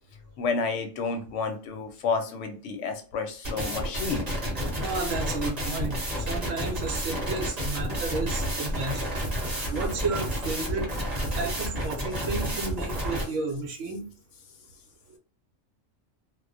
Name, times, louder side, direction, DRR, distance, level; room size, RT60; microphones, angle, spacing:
voice 1, 0.4-4.3, left 4 dB, 70° left, 6 dB, 0.9 m, -30 dB
sound 1, 3.4-13.2, equal, 35° right, 0.8 m, -30 dB
voice 2, 4.8-9.1 9.7-11.0 11.3-14.1, right 3 dB, 75° right, 4 dB, 1.0 m, -32 dB
2.3 x 2.1 x 2.5 m, 0.38 s
omnidirectional pair, 1.4 m